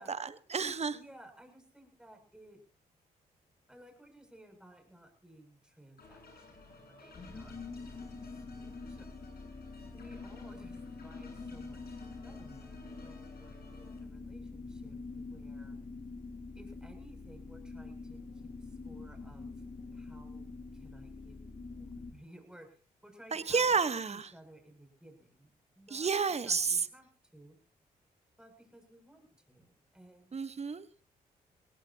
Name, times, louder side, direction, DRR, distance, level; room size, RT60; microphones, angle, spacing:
voice 1, 0.0-1.0 23.3-24.3 25.9-26.9 30.3-30.9, right 5 dB, 40° right, 13 dB, 1.3 m, -31 dB
voice 2, 0.9-2.6 3.7-9.1 9.9-12.0 12.2-15.8 16.6-19.5 19.9-20.5 20.7-22.7 23.0-26.1 26.4-27.6 28.4-30.4, right 1 dB, 5° right, 4 dB, 7.2 m, -57 dB
sound 1, 6.0-14.0, left 3 dB, 65° left, 7.9 m, -55 dB
sound 2, 7.1-22.1, left 3 dB, 45° left, 3.9 m, -45 dB
22.0 x 17.5 x 2.9 m, 0.39 s
supercardioid pair, 50°, 18 cm